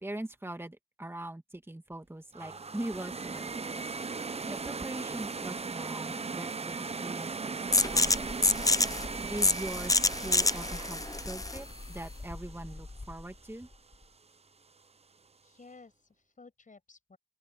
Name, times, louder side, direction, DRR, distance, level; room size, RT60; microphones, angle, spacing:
voice 1, 0.0-3.9 4.1-8.3 9.2-13.7, right 1 dB, 15° right, 2.3 m, -42 dB
sound 1, 2.3-13.3, right 4 dB, 40° right, 0.7 m, -38 dB
sound 2, 7.7-13.2, left 2 dB, 20° left, 0.6 m, -28 dB
voice 2, 15.4-17.2, left 3 dB, 55° left, 6.3 m, -55 dB
open air
wide cardioid pair, 75°, 16 cm